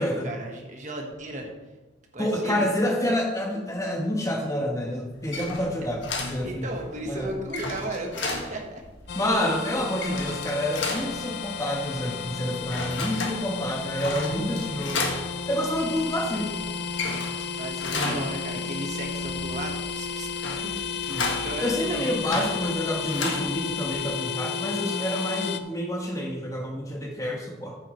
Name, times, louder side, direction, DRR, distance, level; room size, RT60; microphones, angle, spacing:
voice 1, 0.0-1.5 2.1-2.7 6.4-8.8 9.1-9.2 17.5-20.3 20.6-22.1, right 1 dB, 40° right, 1 dB, 1.4 m, -35 dB
voice 2, 2.2-6.7 7.1-7.3 9.1-15.1 15.5-16.5 17.9-18.3 21.1-27.8, left 1 dB, 15° left, 1 dB, 1.3 m, -28 dB
sound 1, 5.1-24.0, left 3 dB, 80° left, 1.7 m, -35 dB
sound 2, 9.1-25.6, left 6 dB, 60° left, 0.5 m, -33 dB
14.0 x 7.5 x 3.2 m, 1.1 s
head